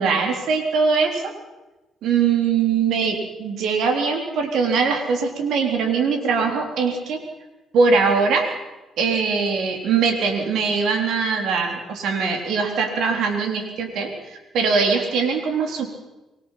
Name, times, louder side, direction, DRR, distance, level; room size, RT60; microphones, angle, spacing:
voice 1, 0.0-1.3 2.0-7.2 7.7-8.5 9.0-15.9, right 5 dB, 65° right, 4 dB, 3.9 m, -21 dB
25.0 x 19.5 x 5.9 m, 1.1 s
hypercardioid pair, 45°, 0 cm